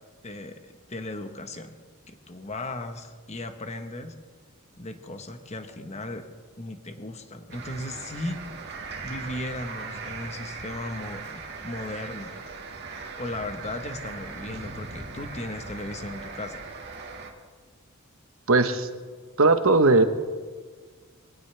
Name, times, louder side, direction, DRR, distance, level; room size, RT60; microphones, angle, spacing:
voice 1, 0.2-1.8 2.1-4.1 4.8-6.3 6.6-8.4 9.0-12.4 13.2-16.7, left 2 dB, 30° left, 7 dB, 1.2 m, -36 dB
sound 1, 7.5-17.3, right 4 dB, 50° right, 2.0 m, -39 dB
voice 2, 18.5-18.9 19.4-20.0, right 3 dB, 65° right, 9 dB, 1.1 m, -18 dB
23.0 x 17.5 x 3.4 m, 1.5 s
head